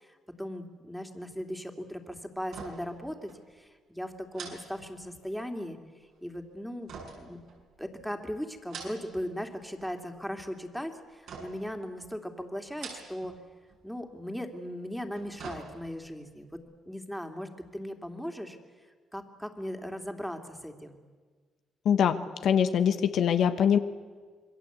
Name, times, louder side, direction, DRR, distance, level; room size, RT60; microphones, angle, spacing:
voice 1, 0.0-5.8 6.2-6.9 7.2-7.4 7.8-13.3 13.8-16.5 16.9-18.6 19.1-21.0, equal, ahead, 5 dB, 2.8 m, -38 dB
sound 1, 2.4-3.0 3.3-3.4 4.3-5.4 6.9-8.0 8.5-9.3 9.6-10.2 11.3-11.8 12.6-13.4 13.7-13.8 14.9-16.1 16.5-16.6, right 5 dB, 80° right, 6.8 m, -45 dB
voice 2, 21.8-23.8, left 8 dB, 70° left, 8 dB, 1.3 m, -23 dB
26.5 x 21.5 x 8.2 m, 1.5 s
cardioid pair, 90°, 0 cm